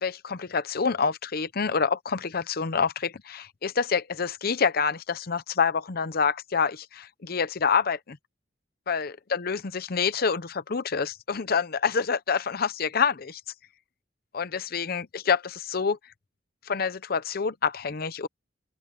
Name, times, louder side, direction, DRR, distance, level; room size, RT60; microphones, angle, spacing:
voice 1, 0.0-8.2 8.9-13.4 14.3-16.0 16.7-18.3, left 5 dB, 55° left, 0.7 m, -27 dB
open air
head